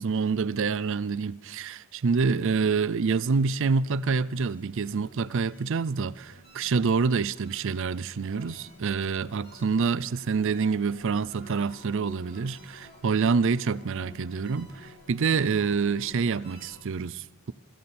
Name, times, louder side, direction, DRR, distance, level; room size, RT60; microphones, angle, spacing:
voice 1, 0.0-17.5, right 5 dB, 60° right, 0.5 m, -27 dB
sound 1, 2.6-16.8, left 1 dB, 45° left, 5.2 m, -53 dB
23.0 x 13.5 x 4.3 m
head